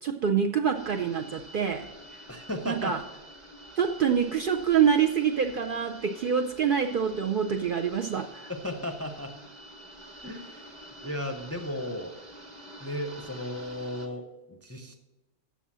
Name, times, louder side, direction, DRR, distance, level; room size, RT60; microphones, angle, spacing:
voice 1, 0.0-2.2 2.7-3.0 3.8-8.5, right 7 dB, 60° right, 6 dB, 0.6 m, -26 dB
sound 1, 0.7-14.1, right 1 dB, 25° right, 1.4 m, -48 dB
voice 2, 2.3-2.9 8.5-9.3 10.2-10.7 11.0-12.1 12.8-14.9, left 1 dB, 15° left, 4 dB, 0.5 m, -35 dB
7.2 x 7.0 x 7.3 m, 1.1 s
omnidirectional pair, 1.2 m